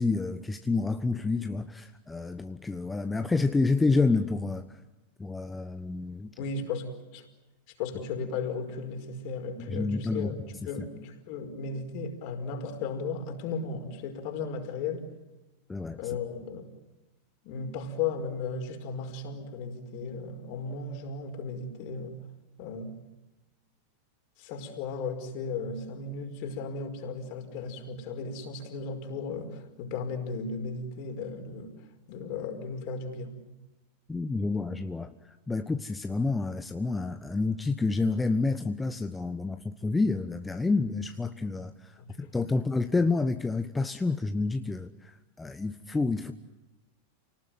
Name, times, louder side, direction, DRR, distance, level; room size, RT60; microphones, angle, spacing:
voice 1, 0.0-4.8 5.2-6.3 9.6-10.3 15.7-16.2 34.1-46.3, left 3 dB, 10° left, 8 dB, 1.2 m, -29 dB
voice 2, 6.4-7.3 7.8-10.3 10.7-15.1 16.0-16.7 17.4-22.2 22.6-22.9 24.4-31.7 32.1-33.4 42.1-42.3, left 4 dB, 55° left, 5 dB, 5.2 m, -35 dB
29.0 x 19.0 x 9.4 m, 1.1 s
hypercardioid pair, 90°, 0 cm